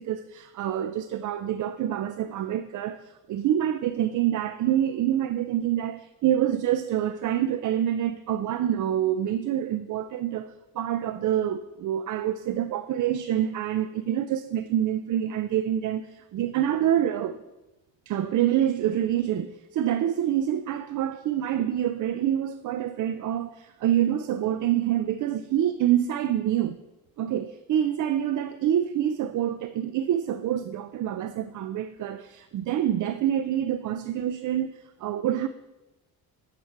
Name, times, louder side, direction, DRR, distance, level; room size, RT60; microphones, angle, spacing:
voice 1, 0.0-10.5 10.7-17.4 18.1-26.8 27.2-35.5, right 11 dB, 50° right, 0.4 m, -26 dB
9.1 x 6.0 x 4.5 m
cardioid pair, 90°, 41 cm